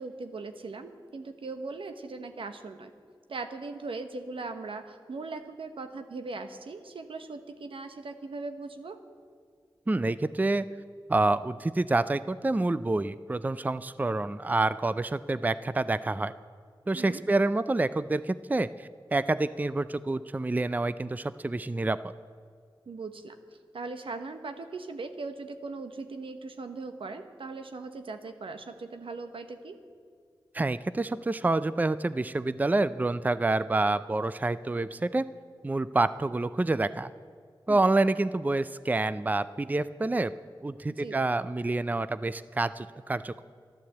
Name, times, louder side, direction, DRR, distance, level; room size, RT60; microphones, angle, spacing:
voice 1, 0.0-2.9 3.3-9.0 16.9-17.2 22.9-23.4 23.7-29.8 37.7-37.9 41.0-41.2, right 3 dB, 85° right, 7 dB, 1.1 m, -39 dB
voice 2, 9.9-10.6 11.1-16.3 16.9-22.1 30.5-35.3 35.6-37.1 37.7-40.3 40.6-43.4, right 2 dB, 20° right, 14 dB, 0.4 m, -27 dB
12.5 x 11.5 x 7.9 m, 2.1 s
wide cardioid pair, 75°, 9 cm